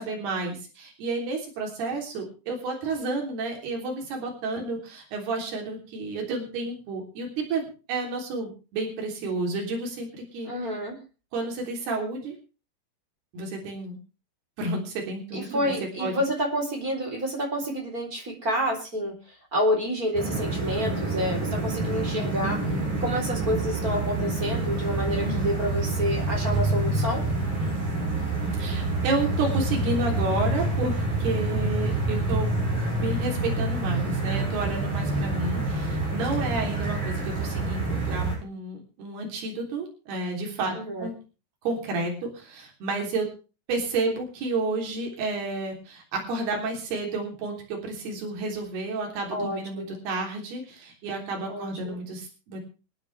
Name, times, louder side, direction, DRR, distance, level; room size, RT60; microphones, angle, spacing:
voice 1, 0.0-7.6 7.9-10.5 11.3-12.4 13.3-14.0 14.6-15.7 16.0-16.2 25.2-25.5 28.6-32.5 32.9-41.1 41.6-43.3 43.7-52.6, right 3 dB, 70° right, 1 dB, 5.4 m, -31 dB
voice 2, 10.4-11.0 15.3-19.2 19.5-22.6 23.0-27.2 40.7-41.1 49.3-50.0 51.5-52.0, equal, 20° right, 2 dB, 3.9 m, -29 dB
sound 1, 20.1-38.4, right 2 dB, 45° right, 8.5 m, -27 dB
25.5 x 9.5 x 3.4 m, 0.33 s
omnidirectional pair, 4.8 m